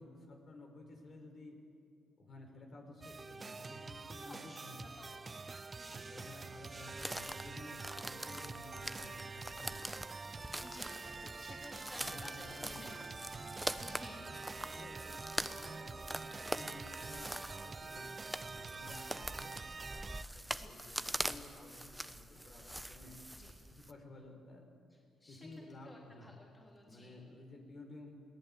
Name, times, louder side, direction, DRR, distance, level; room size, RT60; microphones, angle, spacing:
voice 1, 0.0-1.6 2.2-5.1 5.9-9.8 10.2-10.6 11.0-11.4 12.0-13.5 14.1-18.1 18.5-20.1 20.3-23.2 23.7-24.7 25.1-26.4 26.9-28.1, left 2 dB, 50° left, 3 dB, 4.6 m, -54 dB
sound 1, 3.0-20.2, right 4 dB, 30° right, 0.5 m, -46 dB
voice 2, 4.2-4.6 5.0-5.3 5.7-6.0 10.6-14.5 20.6-20.7 23.3-23.5 24.9-27.2, left 1 dB, 20° left, -1 dB, 3.3 m, -55 dB
sound 2, 7.0-23.9, right 1 dB, 5° right, 0.8 m, -44 dB
22.0 x 17.5 x 8.6 m, 2.4 s
cardioid pair, 90°, 0 cm